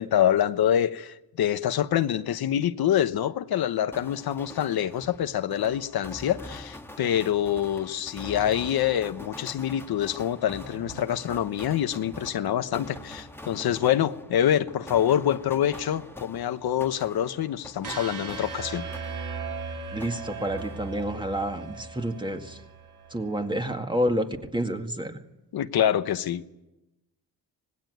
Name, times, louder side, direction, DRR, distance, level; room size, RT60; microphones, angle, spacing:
voice 1, 0.0-18.9 25.5-26.4, left 10 dB, 70° left, 10 dB, 1.1 m, -26 dB
sound 1, 3.9-19.6 20.0-21.3, left 1 dB, 5° left, 1.4 m, -45 dB
sound 2, 10.7-19.0, right 6 dB, 85° right, 4.4 m, -54 dB
sound 3, 17.8-23.9, right 4 dB, 55° right, 3.4 m, -38 dB
voice 2, 19.9-22.6 23.1-24.3 24.5-25.2, equal, 10° right, 5 dB, 2.0 m, -29 dB
25.5 x 19.0 x 9.5 m, 0.95 s
cardioid pair, 130°, 38 cm